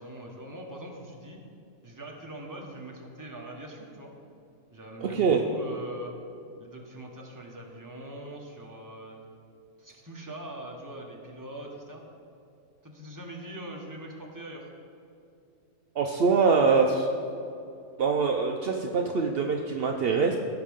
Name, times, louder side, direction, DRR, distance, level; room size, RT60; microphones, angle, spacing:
voice 1, 0.0-1.4 1.8-4.1 4.7-6.1 6.6-9.2 9.8-12.0 12.8-14.7, right 1 dB, 15° right, -1 dB, 1.1 m, -42 dB
voice 2, 5.0-5.4 16.0-17.1 18.0-20.4, right 5 dB, 65° right, 3 dB, 0.5 m, -24 dB
16.5 x 5.8 x 3.6 m, 2.6 s
omnidirectional pair, 1.6 m